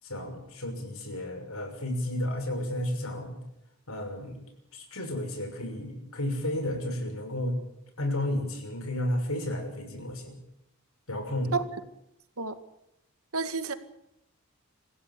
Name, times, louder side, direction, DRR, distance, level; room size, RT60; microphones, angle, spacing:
voice 1, 0.0-3.4 3.9-4.4 4.7-7.6 8.0-10.4 11.1-11.6, left 1 dB, 80° left, 6.4 m, -32 dB
voice 2, 13.3-13.7, right 4 dB, 90° right, 2.0 m, -29 dB
26.5 x 16.0 x 8.5 m
head